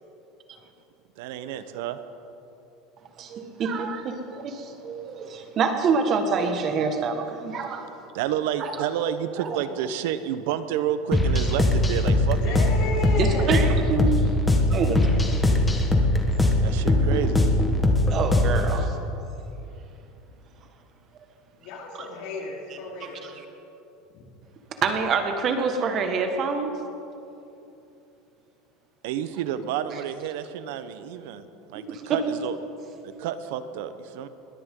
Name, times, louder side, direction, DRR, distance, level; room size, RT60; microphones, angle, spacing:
voice 1, 1.2-2.0 8.1-12.6 16.6-17.5 29.0-31.4 31.7-32.6 33.0-34.3, right 10 dB, 75° right, 11 dB, 1.0 m, -30 dB
voice 2, 3.2-8.1 8.6-8.7 9.4-9.6 13.2-14.3 14.7-15.2 18.1-19.0 22.0-22.1 23.0-23.4 24.8-26.7 31.9-32.2, right 5 dB, 40° right, 5 dB, 1.7 m, -26 dB
sound 1, 11.1-18.8, left 1 dB, 10° left, 1.5 m, -21 dB
voice 3, 12.2-13.8 21.6-23.3, left 2 dB, 65° left, -2 dB, 4.2 m, -33 dB
21.5 x 17.5 x 3.9 m, 2.9 s
supercardioid pair, 140°, 0 cm